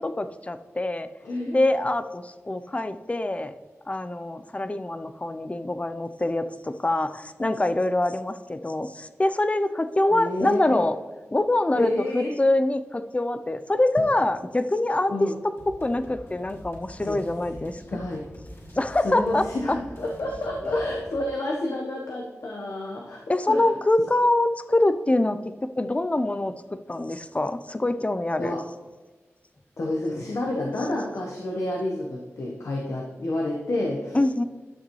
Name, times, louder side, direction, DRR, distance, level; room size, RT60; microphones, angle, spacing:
voice 1, 0.0-1.1 1.5-3.5 3.9-11.0 11.3-15.1 15.4-18.0 18.8-19.8 20.6-20.7 23.3-25.4 25.8-28.5 34.1-34.4, left 2 dB, 25° left, 11 dB, 0.6 m, -25 dB
voice 2, 1.2-1.6 10.1-10.8 11.7-12.3 15.1-15.4 17.0-17.2 17.5-18.2 19.0-23.7 28.4-28.6 29.8-34.2, left 1 dB, 75° left, -1 dB, 1.2 m, -29 dB
sound 1, 15.6-21.1, equal, 55° left, 2.7 m, -45 dB
11.5 x 6.5 x 3.2 m, 1.3 s
cardioid pair, 50°, 5 cm